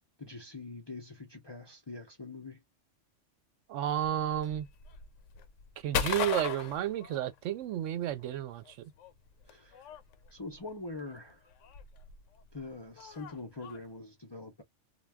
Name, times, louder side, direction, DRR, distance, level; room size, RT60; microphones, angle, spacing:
voice 1, 0.2-2.6 9.4-9.8 10.3-11.5 12.5-14.6, left 3 dB, 40° left, 0.4 m, -44 dB
voice 2, 3.7-4.7 5.8-8.9, right 11 dB, 80° right, 0.9 m, -32 dB
sound 1, 3.9-7.8 8.0-13.8, left 8 dB, 80° left, 0.9 m, -38 dB
2.2 x 2.2 x 3.3 m
omnidirectional pair, 1.3 m